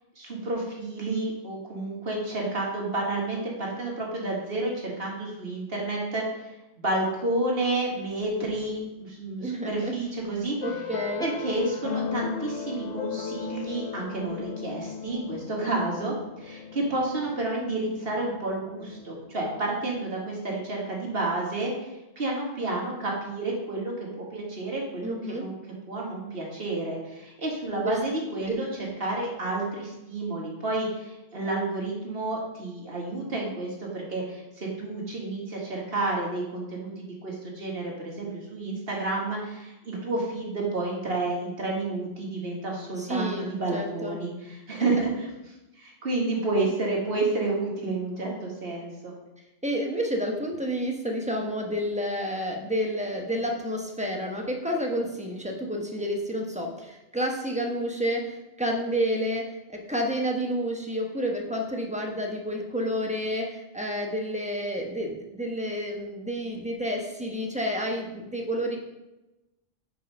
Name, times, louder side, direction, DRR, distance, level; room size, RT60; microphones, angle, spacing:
voice 1, 0.2-6.3 6.8-10.6 11.2-25.5 25.9-28.7 29.0-45.3 45.8-49.1, right 2 dB, 50° right, -2 dB, 1.9 m, -30 dB
voice 2, 9.4-9.9 10.6-11.3 25.0-25.5 27.8-28.0 28.5-28.6 43.0-44.2 44.8-45.1 49.6-68.8, equal, 5° right, 1 dB, 0.9 m, -30 dB
sound 1, 10.6-19.8, left 7 dB, 70° left, 1.1 m, -37 dB
5.5 x 5.4 x 5.3 m, 0.98 s
omnidirectional pair, 1.3 m